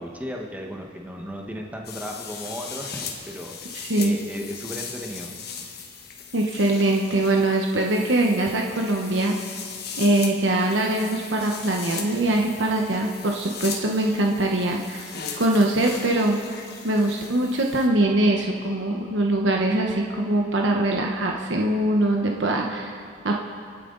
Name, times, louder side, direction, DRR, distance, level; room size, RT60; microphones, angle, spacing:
voice 1, 0.0-5.3, equal, 10° right, 0 dB, 1.3 m, -35 dB
sound 1, 1.8-17.9, left 6 dB, 55° left, 1.3 m, -38 dB
voice 2, 6.3-9.4 10.0-15.1 15.4-16.4 16.8-23.4, right 1 dB, 75° right, 0 dB, 1.1 m, -22 dB
26.5 x 9.1 x 4.0 m, 2.3 s
head